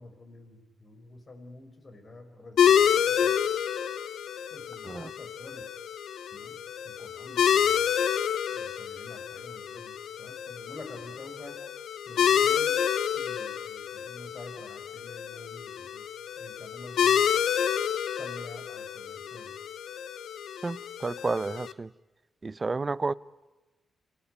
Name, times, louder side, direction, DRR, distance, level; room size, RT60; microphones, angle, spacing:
voice 1, 0.0-3.4 4.5-5.6 6.3-6.6 6.8-7.9 8.5-11.6 12.1-12.8 13.1-16.1 16.4-17.2 18.2-19.5, left 2 dB, 40° left, 5.8 m, -48 dB
sound 1, 2.6-21.7, left 8 dB, 75° left, 0.9 m, -28 dB
voice 2, 20.6-21.9 22.4-23.1, right 3 dB, 35° right, 0.8 m, -31 dB
27.5 x 17.5 x 9.5 m
supercardioid pair, 50°, 0 cm